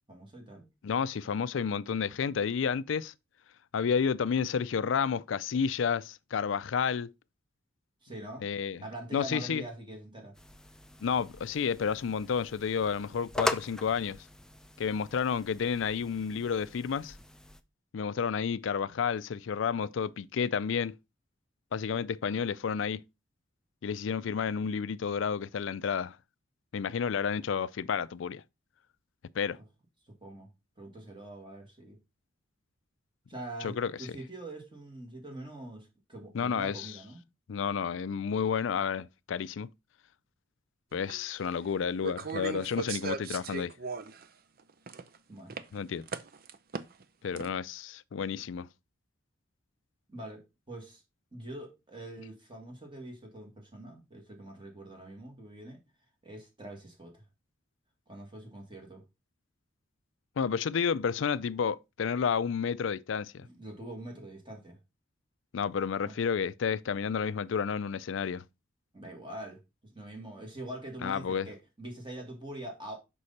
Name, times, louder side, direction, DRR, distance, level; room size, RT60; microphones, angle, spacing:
voice 1, 0.1-0.7 8.0-8.5 8.8-10.3 30.0-30.5 30.8-32.0 33.3-37.2 45.3-45.5 50.1-51.0 51.3-55.8 56.2-57.2 58.1-59.0 63.4-64.8 66.0-66.2 68.9-73.0, right 1 dB, 25° right, 2.0 m, -44 dB
voice 2, 0.8-3.1 3.7-7.1 8.4-8.8 9.1-9.6 11.0-14.2 14.8-17.1 17.9-20.9 21.7-23.0 23.8-26.2 26.7-28.4 29.4-29.6 33.6-33.9 36.3-36.9 37.5-39.7 40.9-43.7 45.7-46.0 47.2-48.7 60.4-63.4 65.5-68.4 71.0-71.5, left 6 dB, 70° left, 0.4 m, -31 dB
sound 1, 10.3-17.6, left 1 dB, 5° left, 0.4 m, -40 dB
sound 2, 41.1-41.2 42.0-44.3 44.6-45.2 45.5-45.6 46.1-47.0 47.4-47.5, right 4 dB, 50° right, 0.6 m, -37 dB
6.5 x 5.4 x 4.1 m
head